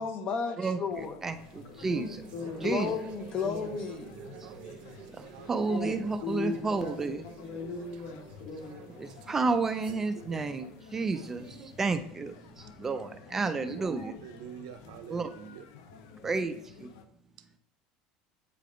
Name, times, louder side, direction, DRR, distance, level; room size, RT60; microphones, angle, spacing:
voice 1, 0.0-1.2 1.9-4.1, left 5 dB, 35° left, 9 dB, 0.6 m, -34 dB
voice 2, 0.6-2.2 2.6-2.9 4.4-4.5 5.1-7.2 9.0-14.1 15.1-15.3 16.2-16.9, right 4 dB, 15° right, 9 dB, 0.3 m, -31 dB
sound 1, 0.9-17.0, left 6 dB, 80° left, 0.6 m, -52 dB
sound 2, 1.4-11.9, right 7 dB, 45° right, 0.6 m, -51 dB
voice 3, 1.7-2.0 2.3-2.9 3.4-3.6 5.7-9.1, left 4 dB, 60° left, 2 dB, 1.4 m, -39 dB
voice 4, 5.2-5.7 6.0-6.1 7.4-7.6 9.9-10.5 13.4-13.9 14.2-15.7, right 8 dB, 85° right, 10 dB, 0.6 m, -46 dB
8.3 x 3.4 x 3.8 m, 0.74 s
cardioid pair, 160°, 3 cm